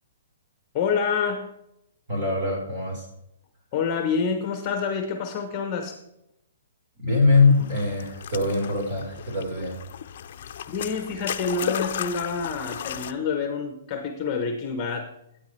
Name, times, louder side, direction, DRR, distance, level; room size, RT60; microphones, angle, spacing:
voice 1, 0.7-1.5 3.7-6.0 10.4-15.1, left 5 dB, 25° left, 7 dB, 1.0 m, -27 dB
voice 2, 2.1-3.1 7.0-9.8, left 3 dB, 35° right, -1 dB, 4.3 m, -22 dB
sound 1, 7.3-13.1, left 9 dB, 50° left, 0.5 m, -35 dB
13.0 x 9.3 x 3.3 m, 0.81 s
hypercardioid pair, 160°, 0 cm